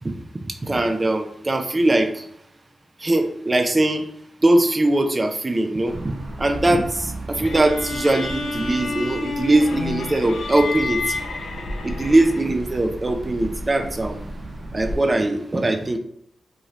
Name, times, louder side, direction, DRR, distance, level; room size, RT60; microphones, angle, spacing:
voice 1, 0.4-2.2 3.0-4.0 4.4-11.2 11.8-14.2 14.7-16.0, right 2 dB, 20° right, 7 dB, 0.4 m, -21 dB
sound 1, 5.9-14.9, right 1 dB, 75° right, 1.0 m, -35 dB
sound 2, 7.4-12.7, left 4 dB, 70° left, 0.5 m, -30 dB
3.8 x 3.0 x 3.0 m, 0.67 s
wide cardioid pair, 170°, 0 cm